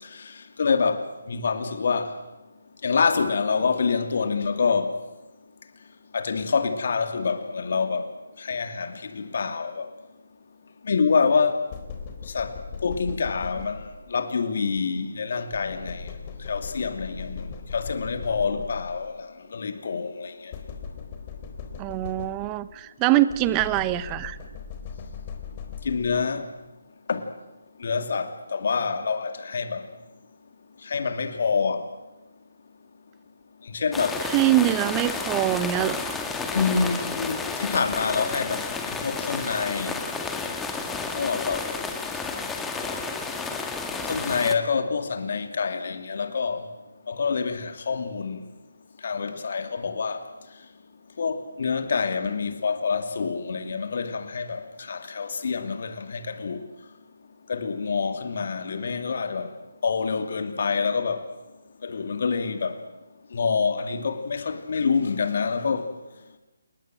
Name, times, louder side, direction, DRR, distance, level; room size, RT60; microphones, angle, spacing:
voice 1, 0.6-2.1 2.8-4.9 6.1-8.1 8.4-9.9 10.8-11.6 12.3-12.5 12.8-13.8 14.1-16.1 16.5-19.1 19.5-20.5 25.8-26.5 27.1-27.3 27.8-29.8 30.9-31.8 33.7-34.2 36.5-40.0 41.1-41.7 44.0-46.6 47.1-48.4 49.0-50.2 51.2-56.7 57.5-59.5 59.8-61.2 61.8-62.8 63.3-65.9, left 5 dB, 55° left, 2.7 m, -26 dB
sound 1, 11.7-14.2 15.5-19.1 20.5-22.7 23.3-26.4, left 5 dB, 30° left, 4.1 m, -38 dB
voice 2, 21.8-24.4 34.3-36.2, right 15 dB, 20° right, 1.1 m, -23 dB
sound 2, 33.9-44.5, left 4 dB, 5° left, 2.1 m, -31 dB
29.5 x 19.5 x 7.8 m
figure-of-eight pair, 150°, 0 cm